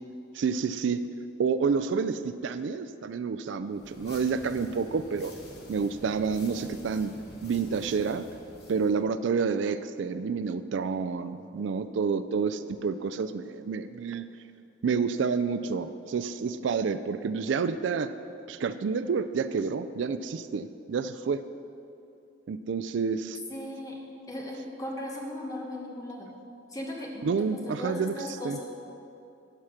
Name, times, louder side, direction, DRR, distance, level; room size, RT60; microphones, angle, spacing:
voice 1, 0.3-1.1 1.4-5.3 5.7-7.1 7.4-8.3 8.7-14.2 14.8-18.1 18.5-21.4 22.5-23.4 27.2-28.1 28.4-28.6, right 5 dB, 75° right, 12 dB, 0.4 m, -29 dB
sound 1, 3.7-9.0, left 1 dB, 55° left, 1.5 m, -48 dB
voice 2, 23.5-24.0 24.3-26.4 26.7-28.6, left 1 dB, 20° left, -1 dB, 1.2 m, -37 dB
11.5 x 5.7 x 6.1 m, 2.6 s
head